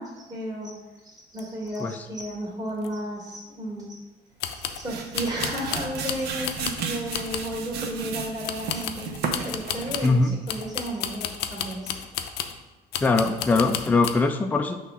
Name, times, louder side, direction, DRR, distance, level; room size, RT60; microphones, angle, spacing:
voice 1, 0.0-4.0 4.7-9.1 9.4-12.0, equal, 20° right, -5 dB, 1.8 m, -33 dB
sound 1, 1.4-1.5 1.7-1.8 2.2-2.3 2.8-2.9 4.4-4.9 5.2-6.9 7.1-7.6 8.4-10.2 10.5-12.6 12.9-14.2, left 9 dB, 85° left, 0.5 m, -33 dB
sound 2, 4.5-10.3, right 5 dB, 75° right, 0.8 m, -34 dB
voice 2, 10.0-10.4 13.0-14.8, left 3 dB, 10° left, 6 dB, 0.3 m, -21 dB
6.2 x 3.0 x 5.4 m, 1.1 s
cardioid pair, 110°, 17 cm